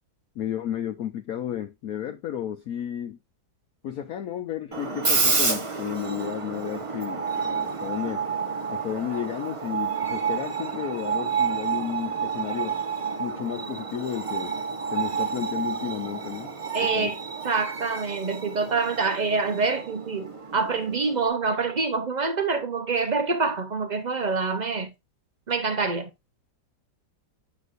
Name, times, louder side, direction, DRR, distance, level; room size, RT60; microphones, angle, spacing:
voice 1, 0.4-3.2 3.8-8.2 8.7-12.7 13.2-14.6 14.9-16.5 16.8-17.1, left 10 dB, 65° left, 1.1 m, -32 dB
Screech, 4.7-21.3, right 5 dB, 30° right, 0.6 m, -30 dB
voice 2, 16.7-17.2 17.4-24.9 25.5-26.1, right 4 dB, 80° right, 0.4 m, -26 dB
8.0 x 5.5 x 2.5 m
omnidirectional pair, 1.9 m